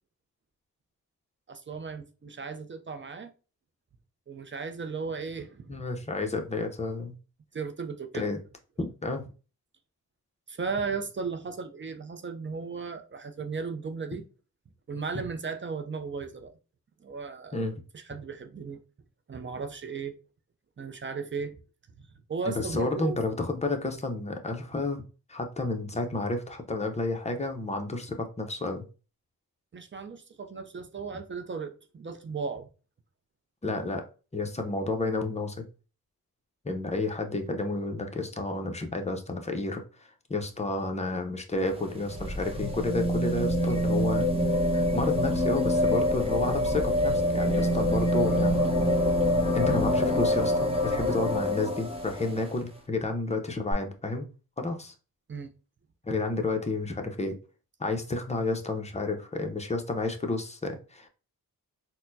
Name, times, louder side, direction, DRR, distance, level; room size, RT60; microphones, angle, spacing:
voice 1, 1.5-3.3 4.3-5.8 7.5-8.3 10.5-14.2 14.9-16.5 17.0-17.6 17.9-18.8 19.3-20.2 20.8-21.6 22.0-23.2 29.7-32.7 55.3-55.5, right 5 dB, 35° right, 0.5 m, -36 dB
voice 2, 5.7-7.1 8.1-8.4 8.8-9.2 17.5-17.7 22.5-25.0 25.3-28.8 33.6-34.0 34.3-35.5 36.6-39.8 40.3-44.2 44.7-48.7 49.5-54.3 54.6-54.9 56.0-57.3 57.8-61.1, left 2 dB, 20° left, 0.7 m, -31 dB
sound 1, 41.5-52.5 53.7-53.8, left 1 dB, 15° right, 1.0 m, -26 dB
4.1 x 2.1 x 2.7 m
cardioid pair, 65°, 36 cm